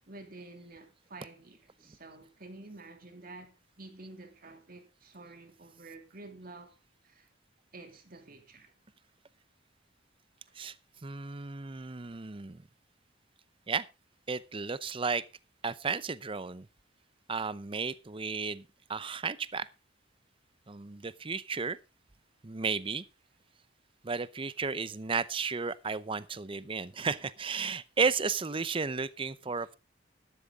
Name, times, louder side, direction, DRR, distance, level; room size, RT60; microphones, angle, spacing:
voice 1, 0.1-6.7 7.0-7.3 7.7-8.8, right 2 dB, 50° right, 2.6 m, -50 dB
voice 2, 11.0-12.6 13.7-13.9 14.3-15.2 15.6-16.7 17.3-18.6 18.9-19.7 20.7-21.8 22.4-23.0 24.0-29.7, right 5 dB, 30° right, 0.6 m, -33 dB
13.0 x 12.0 x 3.6 m
head